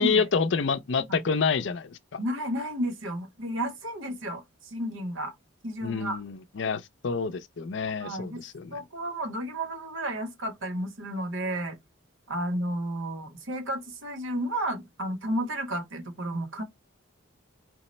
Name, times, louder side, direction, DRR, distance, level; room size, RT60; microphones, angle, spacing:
voice 1, 0.0-2.2 5.8-8.8, left 5 dB, 60° left, 0.5 m, -28 dB
voice 2, 2.2-5.3 5.6-6.2 8.0-8.4 8.7-11.8 12.3-16.6, right 1 dB, 70° right, 1.1 m, -32 dB
4.6 x 2.0 x 4.2 m
head